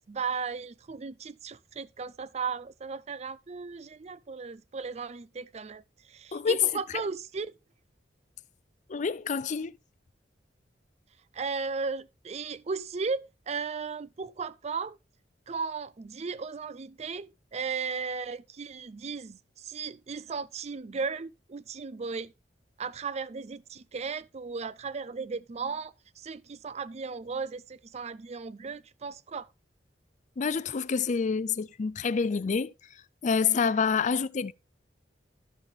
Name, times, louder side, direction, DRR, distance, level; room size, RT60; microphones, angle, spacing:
voice 1, 0.1-5.8 6.1-7.5 11.3-15.0 15.5-22.3 22.8-29.5, right 5 dB, 40° right, 0.5 m, -36 dB
voice 2, 6.3-6.6 8.9-9.7 30.4-32.7 33.2-34.5, left 5 dB, 45° left, 0.4 m, -27 dB
13.0 x 5.3 x 3.7 m
head